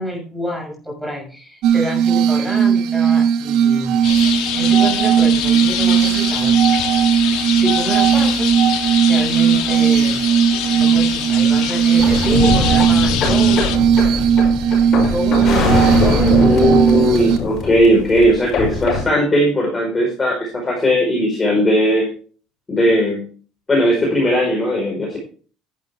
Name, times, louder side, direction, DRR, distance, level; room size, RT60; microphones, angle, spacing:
voice 1, 0.0-6.9 7.5-10.2 10.7-13.7 14.9-16.7, equal, 5° right, -1 dB, 6.4 m, -28 dB
Glass, 1.6-17.4, right 8 dB, 70° right, 1.7 m, -16 dB
sound 1, 4.0-13.8, left 11 dB, 75° left, 1.5 m, -25 dB
sound 2, 12.0-19.0, left 3 dB, 45° left, 5.9 m, -21 dB
voice 2, 16.4-22.1 22.7-23.2 23.7-25.2, equal, 20° left, -1 dB, 4.6 m, -17 dB
11.0 x 10.5 x 3.5 m, 0.40 s
cardioid pair, 125°, 0 cm